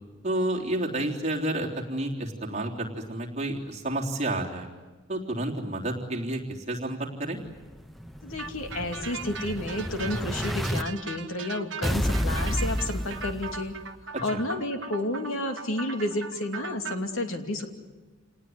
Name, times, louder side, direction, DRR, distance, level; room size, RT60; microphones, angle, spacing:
voice 1, 0.2-4.7 5.1-7.4 14.1-14.4, right 1 dB, 35° right, -2 dB, 3.5 m, -30 dB
Explosion, 7.5-10.8 11.8-13.8, equal, ahead, 0.8 m, -31 dB
voice 2, 8.2-13.7 14.0-17.7, left 1 dB, 85° left, 5 dB, 2.7 m, -31 dB
sound 1, 8.4-17.0, right 5 dB, 60° right, 1.4 m, -39 dB
28.0 x 19.0 x 9.7 m, 1.3 s
head